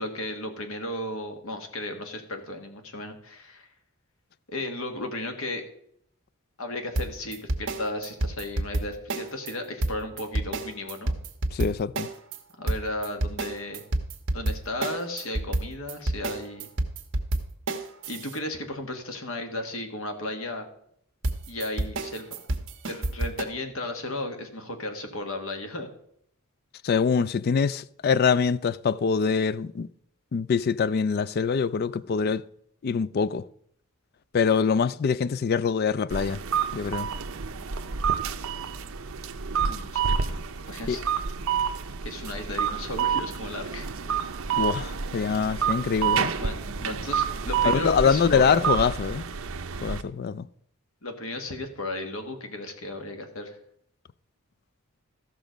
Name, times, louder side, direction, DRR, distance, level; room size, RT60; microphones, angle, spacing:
voice 1, 0.0-3.7 4.5-5.6 6.6-11.2 12.6-13.8 14.3-16.7 18.1-20.7 21.5-22.3 22.9-25.9 39.7-41.0 42.0-43.9 46.3-48.7 51.0-53.6, left 1 dB, 70° left, 1.7 m, -35 dB
sound 1, 7.0-9.5 9.8-12.4 12.7-18.4 21.2-23.4, right 2 dB, 60° right, 1.2 m, -29 dB
voice 2, 11.5-12.1 26.8-29.9 30.3-32.4 32.8-33.4 34.3-36.4 36.7-37.1 40.9-41.0 44.6-46.3 47.6-49.3 49.8-50.5, left 6 dB, 45° left, 0.3 m, -24 dB
sound 2, 36.1-50.0, right 7 dB, 75° right, 0.7 m, -29 dB
14.5 x 6.2 x 5.1 m
head